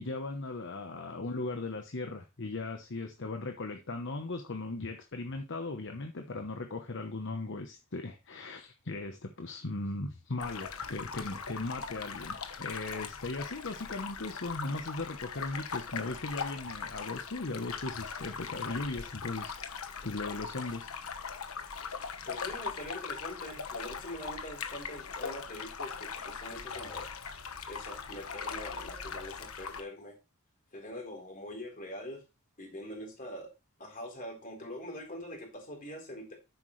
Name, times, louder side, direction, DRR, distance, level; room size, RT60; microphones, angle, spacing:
voice 1, 0.0-20.9, left 2 dB, 60° left, 1.0 m, -38 dB
sound 1, 10.4-29.8, left 6 dB, 80° left, 1.3 m, -40 dB
voice 2, 22.3-27.1 27.7-30.1 30.7-32.2 32.6-33.5 33.8-36.3, left 1 dB, 40° left, 4.0 m, -43 dB
10.0 x 8.3 x 3.2 m
head